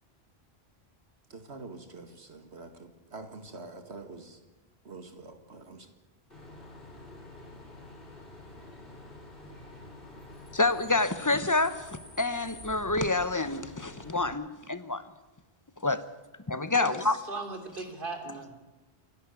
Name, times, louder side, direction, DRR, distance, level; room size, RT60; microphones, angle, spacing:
voice 1, 1.3-4.4 4.8-5.9, right 3 dB, 80° right, 7 dB, 2.3 m, -45 dB
Bus / Idling / Screech, 6.3-14.3, left 1 dB, 60° left, 5.9 m, -48 dB
voice 2, 10.5-15.0 15.8-16.0 16.5-17.2, left 2 dB, 20° left, 12 dB, 0.9 m, -28 dB
voice 3, 17.3-18.6, right 3 dB, 55° right, 5 dB, 3.2 m, -38 dB
27.5 x 11.0 x 8.4 m, 1.2 s
omnidirectional pair, 1.1 m